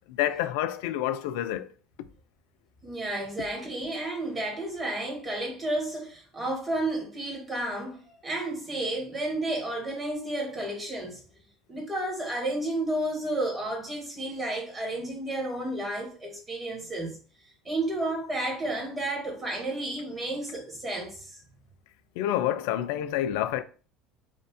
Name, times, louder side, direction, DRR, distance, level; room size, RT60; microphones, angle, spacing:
voice 1, 0.1-1.7 22.2-23.6, left 12 dB, 65° left, 0.3 m, -28 dB
voice 2, 2.8-11.2 11.7-17.2 17.7-21.3, right 1 dB, 25° right, 1.8 m, -32 dB
4.3 x 2.4 x 3.5 m
hypercardioid pair, 70°, 0 cm